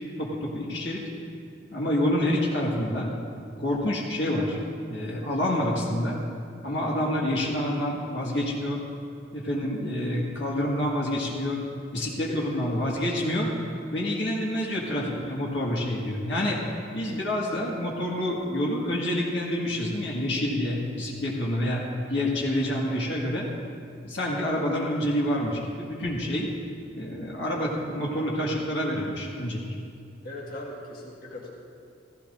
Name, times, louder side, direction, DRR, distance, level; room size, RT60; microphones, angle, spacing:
voice 1, 0.2-1.0 1.7-3.1 3.6-4.6 4.9-6.2 6.6-8.8 9.3-11.6 11.9-13.5 13.9-16.6 16.9-23.5 24.0-26.5 26.9-29.6, left 1 dB, 65° left, -3 dB, 1.7 m, -27 dB
voice 2, 6.6-7.0 12.0-13.1 30.2-31.5, left 1 dB, 50° left, -3 dB, 1.7 m, -40 dB
16.0 x 15.5 x 2.6 m, 2.4 s
head